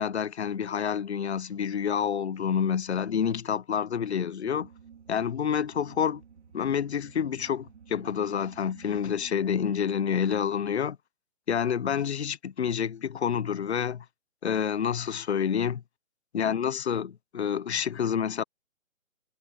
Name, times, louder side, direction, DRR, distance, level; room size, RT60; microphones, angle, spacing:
voice 1, 0.0-4.7 5.1-6.2 6.5-11.0 11.5-14.0 14.4-15.8 16.3-18.4, left 7 dB, 55° left, 0.9 m, -28 dB
sound 1, 4.4-10.4, right 7 dB, 60° right, 2.6 m, -52 dB
hypercardioid pair, 165°, 40 cm